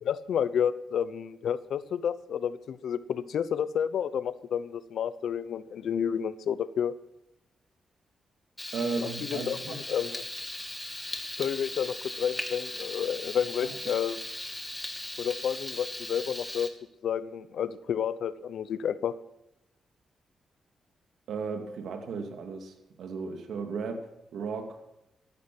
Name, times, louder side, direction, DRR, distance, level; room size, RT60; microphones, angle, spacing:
voice 1, 0.0-6.9 9.0-10.2 11.4-14.2 15.2-16.7 17.0-19.1, left 8 dB, 80° left, 15 dB, 0.8 m, -30 dB
Frying (food), 8.6-16.7, left 1 dB, 10° left, 2.3 m, -38 dB
voice 2, 8.7-9.8 13.6-13.8 21.3-24.8, right 4 dB, 85° right, 5 dB, 2.4 m, -35 dB
15.0 x 12.5 x 6.1 m, 0.86 s
cardioid pair, 85°, 0 cm